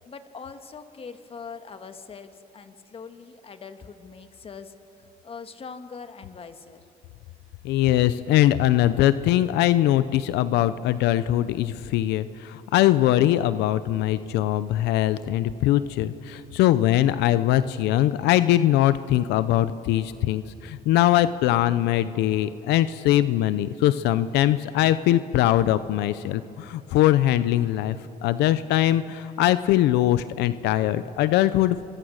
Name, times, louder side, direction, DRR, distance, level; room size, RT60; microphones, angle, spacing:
voice 1, 0.0-4.7 5.2-6.8, left 5 dB, 35° left, 8 dB, 1.7 m, -42 dB
voice 2, 7.6-28.0 28.2-31.8, left 13 dB, 85° left, 14 dB, 0.7 m, -21 dB
29.5 x 24.0 x 6.5 m, 2.7 s
cardioid pair, 110°, 17 cm